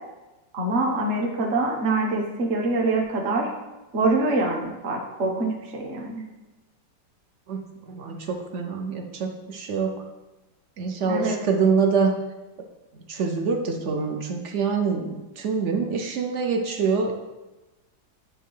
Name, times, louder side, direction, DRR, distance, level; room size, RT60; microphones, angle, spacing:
voice 1, 0.5-3.5 3.9-6.2 11.0-11.3, right 2 dB, 40° right, 0 dB, 1.2 m, -25 dB
voice 2, 7.5-10.0 10.8-12.1 13.1-17.1, right 5 dB, 65° right, 3 dB, 0.7 m, -25 dB
9.3 x 3.6 x 5.5 m, 1.1 s
omnidirectional pair, 2.1 m